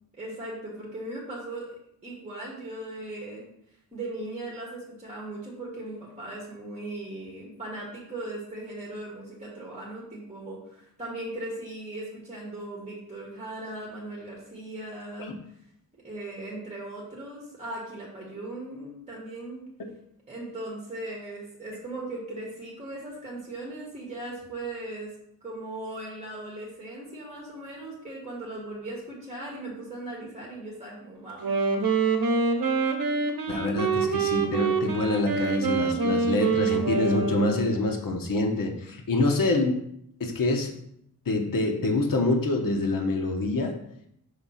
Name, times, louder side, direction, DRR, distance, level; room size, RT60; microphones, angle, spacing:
voice 1, 0.2-3.5 3.9-15.3 16.0-19.6 20.3-25.1 25.4-31.5, right 2 dB, 15° right, -4 dB, 1.7 m, -38 dB
Wind instrument woodwind instrument, 31.3-37.8, right 4 dB, 65° right, 0.9 m, -26 dB
voice 2, 33.5-39.8 40.2-40.7 41.3-43.7, left 2 dB, 60° left, 2 dB, 1.0 m, -26 dB
5.7 x 3.6 x 5.6 m, 0.72 s
wide cardioid pair, 140°, 37 cm